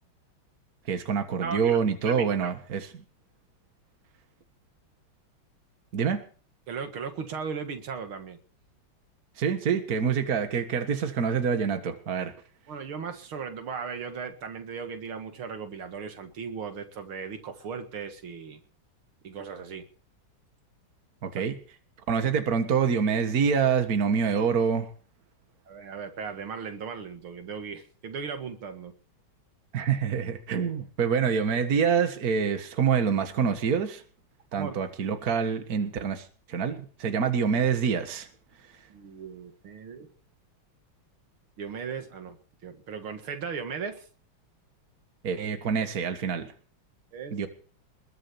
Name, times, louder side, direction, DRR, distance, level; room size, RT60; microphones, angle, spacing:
voice 1, 0.9-3.0 5.9-6.2 9.4-12.3 21.2-21.6 22.1-24.9 29.7-34.0 34.5-38.3 45.2-46.5 47.3-47.5, right 6 dB, 50° right, 2.0 m, -26 dB
voice 2, 1.4-1.8 2.1-2.2 6.7-8.4 12.7-18.6 19.2-19.9 21.3-21.4 25.7-28.9 34.6-34.7 38.9-40.1 41.6-42.4 42.6-44.1 47.1-47.4, right 6 dB, 85° right, 2.7 m, -37 dB
21.0 x 7.6 x 7.1 m
omnidirectional pair, 2.2 m